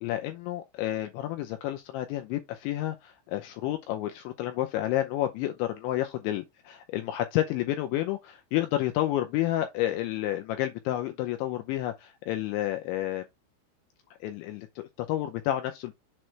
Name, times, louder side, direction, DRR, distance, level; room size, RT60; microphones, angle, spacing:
voice 1, 0.0-13.3 14.2-15.9, left 14 dB, 80° left, 2.7 m, -30 dB
7.5 x 3.0 x 4.5 m
omnidirectional pair, 5.9 m